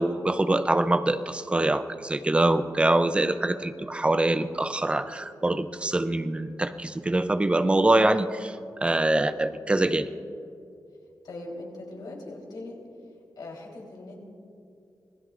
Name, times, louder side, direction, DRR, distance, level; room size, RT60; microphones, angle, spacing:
voice 1, 0.0-8.6 8.8-10.1, right 2 dB, 15° right, 10 dB, 0.5 m, -24 dB
voice 2, 11.2-12.8 13.4-14.2, left 2 dB, 75° left, -1 dB, 3.6 m, -40 dB
26.5 x 19.0 x 2.5 m, 2.5 s
wide cardioid pair, 175°, 7 cm